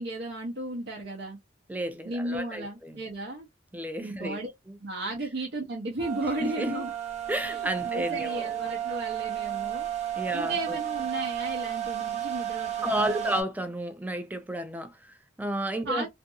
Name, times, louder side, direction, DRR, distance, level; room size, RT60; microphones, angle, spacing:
voice 1, 0.0-1.4 2.0-3.5 4.0-4.5 4.8-6.9 7.5-9.9 10.3-13.4 15.8-16.1, right 2 dB, 70° right, 0.7 m, -34 dB
voice 2, 1.7-3.0 3.7-4.4 4.7-4.8 6.4-6.8 7.3-8.4 10.2-10.8 12.8-16.1, right 1 dB, 10° right, 0.4 m, -32 dB
sound 1, 6.0-13.4, right 11 dB, 35° right, 0.8 m, -33 dB
2.7 x 2.5 x 2.3 m
head